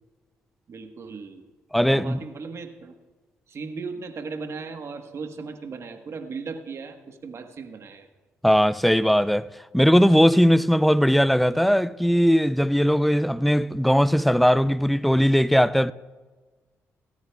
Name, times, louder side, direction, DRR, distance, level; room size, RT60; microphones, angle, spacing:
voice 1, 0.7-1.4 1.9-2.9 3.5-8.1, right 4 dB, 55° right, 1.3 m, -37 dB
voice 2, 1.7-2.2 8.4-15.9, equal, ahead, 0.4 m, -19 dB
17.0 x 13.5 x 2.3 m
supercardioid pair, 60°, 6 cm